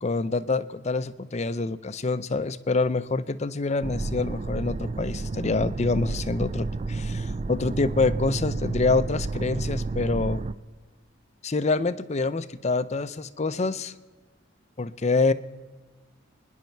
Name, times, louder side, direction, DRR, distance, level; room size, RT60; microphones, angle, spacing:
voice 1, 0.0-10.4 11.4-13.9 14.8-15.3, left 3 dB, 35° left, 13 dB, 0.6 m, -26 dB
sound 1, 3.8-10.5, right 3 dB, 35° right, 0.4 m, -31 dB
27.5 x 10.5 x 4.6 m, 1.3 s
head